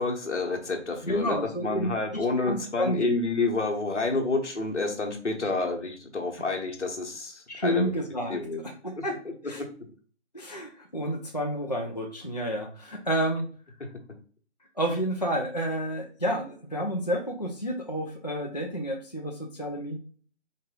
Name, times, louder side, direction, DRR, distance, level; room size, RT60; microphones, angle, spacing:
voice 1, 0.0-7.9 8.3-8.6 9.0-9.3 9.6-9.7, left 3 dB, 70° left, 3 dB, 1.2 m, -29 dB
voice 2, 1.0-1.9 2.4-3.2 7.5-9.2 9.4-9.6 10.3-13.5 14.8-20.0, equal, 35° left, 0 dB, 0.4 m, -30 dB
4.2 x 2.6 x 3.8 m, 0.43 s
figure-of-eight pair, 165°, 36 cm